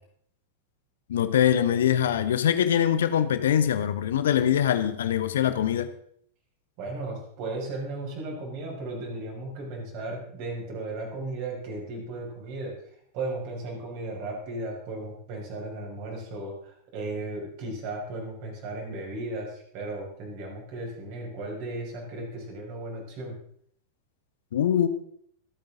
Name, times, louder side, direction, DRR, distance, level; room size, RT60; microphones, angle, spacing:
voice 1, 1.1-5.9 24.5-24.9, left 9 dB, 60° left, 12 dB, 1.0 m, -23 dB
voice 2, 6.8-12.7 13.1-23.3, right 2 dB, 45° right, -1 dB, 6.0 m, -35 dB
26.0 x 9.0 x 3.8 m, 0.65 s
figure-of-eight pair, 90°, 0 cm